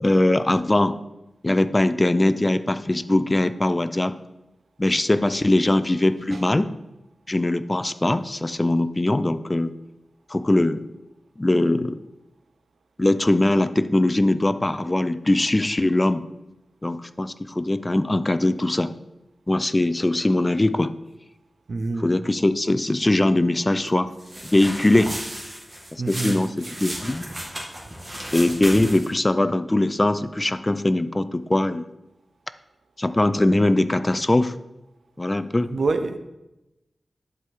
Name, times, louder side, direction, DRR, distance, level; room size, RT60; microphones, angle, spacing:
voice 1, 0.0-1.0 1.4-4.1 4.8-6.7 7.3-9.7 10.3-10.8 11.4-12.0 13.0-16.2 16.8-18.9 19.5-20.9 22.0-24.1 24.5-25.2 25.9-26.5 26.8-27.2 28.3-31.8 33.0-34.5 35.2-35.7, left 1 dB, 25° left, 13 dB, 0.5 m, -21 dB
voice 2, 21.7-22.1 26.0-26.4 26.7-26.8 28.7-28.9 35.7-36.2, right 3 dB, 70° right, 9 dB, 0.7 m, -27 dB
sound 1, 24.2-29.2, equal, 25° right, 2.2 m, -34 dB
11.0 x 4.8 x 4.7 m, 0.95 s
cardioid pair, 55°, 0 cm